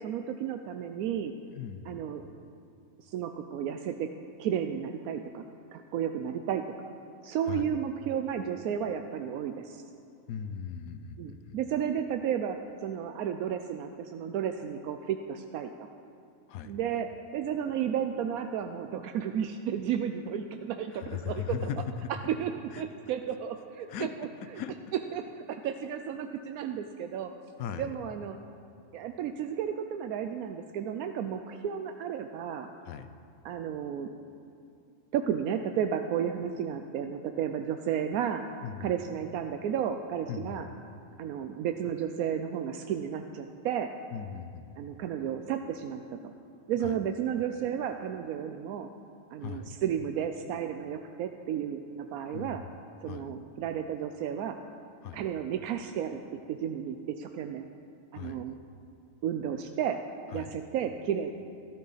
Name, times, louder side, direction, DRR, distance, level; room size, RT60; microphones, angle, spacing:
voice 1, 0.0-1.3 1.9-2.3 3.0-4.1 4.4-5.4 5.7-6.7 7.2-9.8 11.2-15.9 16.6-21.4 22.2-24.6 25.1-27.3 27.8-28.4 28.9-32.7 33.4-34.1 35.1-38.4 38.8-40.7 41.2-43.9 44.8-46.3 46.7-48.9 49.3-52.6 53.0-54.6 55.1-57.6 58.1-58.6 59.2-60.0 60.3-61.3, right 8 dB, 85° right, 6 dB, 1.0 m, -33 dB
voice 2, 1.5-2.0 7.5-7.7 10.3-11.6 16.5-16.8 20.9-22.1 22.7-22.8 23.9-24.1 24.4-24.7 27.6-27.9 32.8-33.1 38.6-38.9 40.3-40.7 44.1-44.8 46.8-47.0 49.4-49.7 52.3-52.7 53.0-53.3 55.0-55.3 58.1-58.5 60.3-60.5, left 8 dB, 85° left, 11 dB, 1.1 m, -38 dB
13.5 x 13.0 x 4.1 m, 2.5 s
omnidirectional pair, 1.5 m